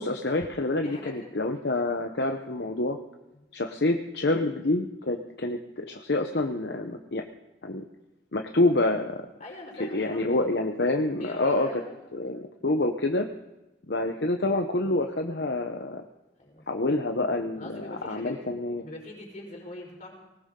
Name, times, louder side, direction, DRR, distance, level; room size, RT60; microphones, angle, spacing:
voice 1, 0.0-3.0 3.5-7.2 7.6-7.8 8.3-9.3 9.8-11.8 12.1-13.3 13.9-16.0 16.7-18.9, left 2 dB, 65° left, 4 dB, 1.0 m, -27 dB
voice 2, 0.8-1.4 3.3-3.4 9.4-10.4 11.2-12.1 16.4-16.6 17.5-18.5 18.8-20.1, left 1 dB, 45° left, 0 dB, 4.6 m, -42 dB
19.5 x 18.5 x 3.8 m, 0.99 s
head